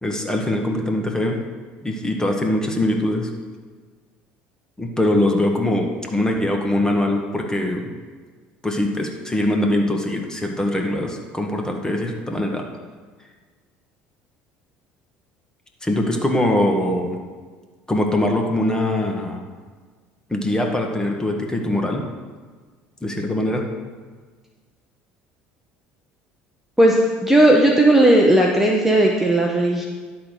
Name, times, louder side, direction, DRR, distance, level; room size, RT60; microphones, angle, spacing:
voice 1, 0.0-1.4 1.8-3.3 4.8-7.9 8.6-12.7 15.8-17.2 17.9-19.4 20.3-22.0 23.0-23.7, left 1 dB, 15° left, 2 dB, 1.7 m, -22 dB
voice 2, 26.8-29.9, right 1 dB, 5° right, -1 dB, 1.2 m, -15 dB
11.5 x 4.2 x 6.5 m, 1.5 s
hypercardioid pair, 70°, 5 cm